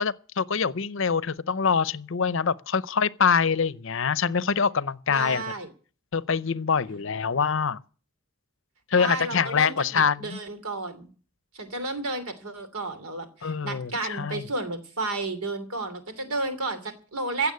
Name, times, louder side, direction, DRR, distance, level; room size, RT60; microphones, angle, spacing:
voice 1, 0.0-5.4 6.1-7.8 8.9-10.4 13.4-14.4, left 6 dB, 60° left, 0.6 m, -25 dB
voice 2, 5.1-5.7 8.9-11.1 11.5-17.5, right 2 dB, 85° right, 3.0 m, -32 dB
16.0 x 7.1 x 9.4 m
head